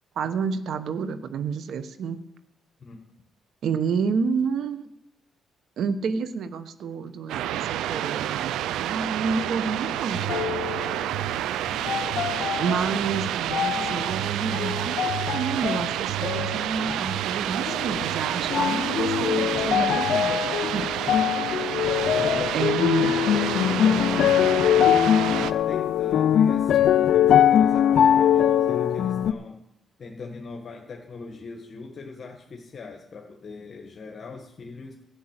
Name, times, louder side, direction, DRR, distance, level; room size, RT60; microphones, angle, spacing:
voice 1, 0.2-2.2 3.6-4.9 5.8-10.3 12.6-15.0 15.3-20.4 20.7-20.8 22.5-23.1, right 5 dB, 70° right, 11 dB, 1.1 m, -29 dB
sound 1, 7.3-25.5, right 12 dB, 85° right, 0.5 m, -29 dB
sound 2, 10.3-11.3 11.8-12.9 13.5-14.1 14.5-15.9 16.2-17.1 17.7-18.2 18.5-29.3, left 10 dB, 70° left, 0.5 m, -22 dB
voice 2, 22.1-22.7 23.3-24.9 25.3-29.6 30.0-34.9, left 4 dB, 45° left, 1 dB, 1.6 m, -40 dB
12.5 x 6.4 x 8.9 m, 0.87 s
cardioid pair, 90°, 0 cm